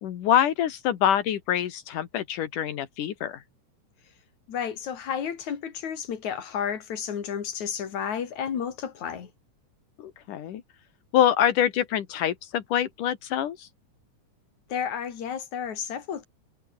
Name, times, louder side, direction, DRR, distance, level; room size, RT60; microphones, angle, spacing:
voice 1, 0.0-3.4 10.0-10.6 11.1-13.7, left 10 dB, 85° left, 3.3 m, -25 dB
voice 2, 4.5-9.3 14.7-16.2, left 8 dB, 65° left, 4.1 m, -32 dB
omnidirectional pair, 3.6 m